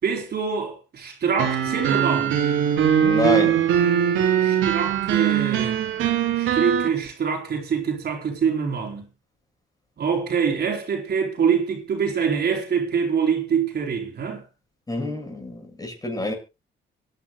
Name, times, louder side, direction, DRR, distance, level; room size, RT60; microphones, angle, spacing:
voice 1, 0.0-2.4 4.4-5.8 6.4-9.1 10.0-14.4, right 6 dB, 55° right, 4.4 m, -25 dB
sound 1, 1.4-6.9, right 9 dB, 80° right, 3.8 m, -21 dB
voice 2, 3.0-3.7 14.9-16.3, left 2 dB, 20° left, 7.3 m, -27 dB
25.0 x 11.0 x 2.5 m
cardioid pair, 90°, 20 cm